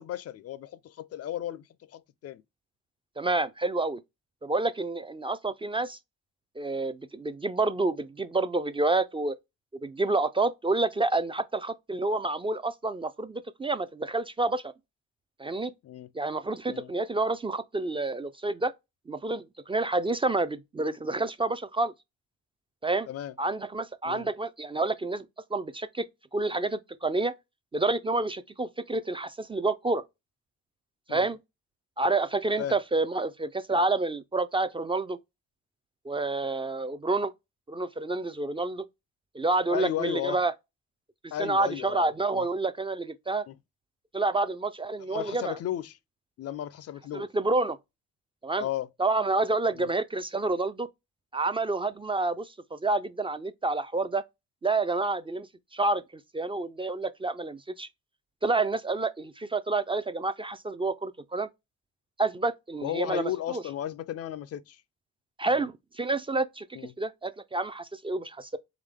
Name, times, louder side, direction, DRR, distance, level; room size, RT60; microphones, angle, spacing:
voice 1, 0.0-2.4 15.8-16.1 16.7-16.9 23.1-23.3 24.0-24.3 31.1-31.3 32.6-32.7 39.7-40.4 41.3-42.5 43.5-43.6 45.1-46.0 46.4-47.3 48.6-48.9 49.7-49.9 62.8-64.8 65.5-65.7 66.7-66.9, left 11 dB, 55° left, 0.4 m, -35 dB
voice 2, 3.2-4.0 4.4-6.0 6.6-9.4 9.8-14.7 15.4-15.7 16.1-18.7 19.1-21.9 22.8-23.1 23.4-26.1 26.3-27.3 27.7-30.0 31.1-31.4 32.0-35.2 36.1-37.3 37.7-38.9 39.3-40.5 41.4-43.5 44.1-45.6 47.1-47.8 48.4-48.7 49.0-50.9 51.3-54.2 54.6-55.5 55.7-56.0 56.3-57.9 58.4-61.5 62.2-63.6 65.4-66.6 67.0-68.6, right 2 dB, 20° right, 0.4 m, -28 dB
3.7 x 3.5 x 3.3 m
cardioid pair, 90°, 30 cm